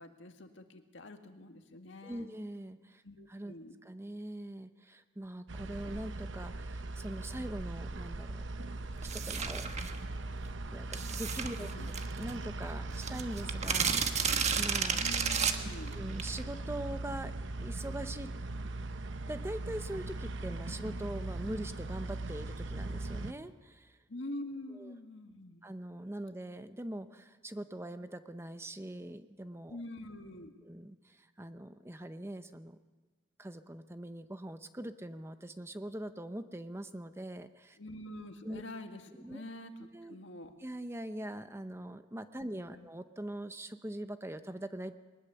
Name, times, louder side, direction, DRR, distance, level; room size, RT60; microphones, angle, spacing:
voice 1, 0.0-2.3 3.0-3.8 11.6-11.9 15.0-16.0 24.1-25.6 29.7-30.6 37.8-40.5 42.4-42.9, left 1 dB, 70° left, 6 dB, 1.9 m, -46 dB
voice 2, 2.0-3.0 3.3-3.5 3.8-8.4 9.0-9.7 10.7-15.0 15.9-17.3 17.6-18.3 19.3-24.0 24.7-24.9 25.6-29.8 30.6-32.8 33.4-37.8 38.4-38.6 39.2-39.4 39.9-40.2 40.6-45.0, right 1 dB, 15° right, 10 dB, 0.7 m, -42 dB
sound 1, 5.5-23.3, right 2 dB, 70° right, 0.9 m, -40 dB
sound 2, 9.0-10.0 10.9-12.3 12.6-12.7 12.9-16.4, right 6 dB, 35° right, 1.3 m, -32 dB
22.0 x 20.0 x 7.0 m, 1.3 s
head